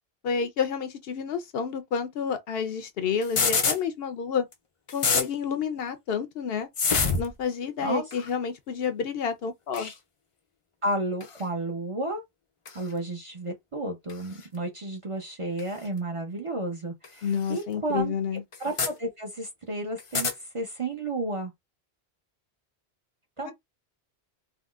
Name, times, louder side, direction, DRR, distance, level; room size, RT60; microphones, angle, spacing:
voice 1, 0.2-4.5 4.9-6.7 7.2-9.9 17.2-18.4 23.4-23.5, left 6 dB, 70° left, 0.7 m, -29 dB
sound 1, 3.2-3.8 4.5-4.6 4.9-5.3 6.8-7.3 8.1-8.3 9.7-9.9 11.2-11.4 12.6-12.8 14.1-14.2 15.6-15.7 17.0-17.1 17.5-17.6 18.5-18.9 20.0-20.3, left 5 dB, 45° left, 0.4 m, -25 dB
voice 2, 10.8-12.2 12.7-18.1 18.6-21.5 23.4-23.5, right 2 dB, 35° right, 0.6 m, -32 dB
3.7 x 2.0 x 2.3 m
omnidirectional pair, 1.1 m